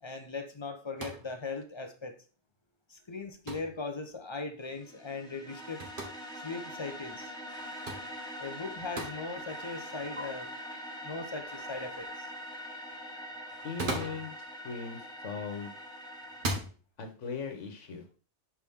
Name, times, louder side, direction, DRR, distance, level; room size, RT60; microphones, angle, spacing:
voice 1, 0.0-2.1 2.9-5.9 6.4-7.3 8.4-10.5 11.0-12.3, left 3 dB, 30° left, 6 dB, 0.7 m, -39 dB
sound 1, 1.0-1.3 3.5-3.8 5.8-6.1 7.9-8.1 9.0-9.2 10.2-10.3 13.6-14.3 15.4-15.7 16.3-16.7, right 2 dB, 45° right, 1.5 m, -36 dB
sound 2, 4.6-16.4, equal, 5° left, 1.0 m, -43 dB
voice 2, 13.6-14.3 14.6-15.7 17.0-18.2, left 5 dB, 85° left, 5 dB, 1.4 m, -39 dB
5.9 x 4.8 x 3.6 m, 0.37 s
omnidirectional pair, 1.2 m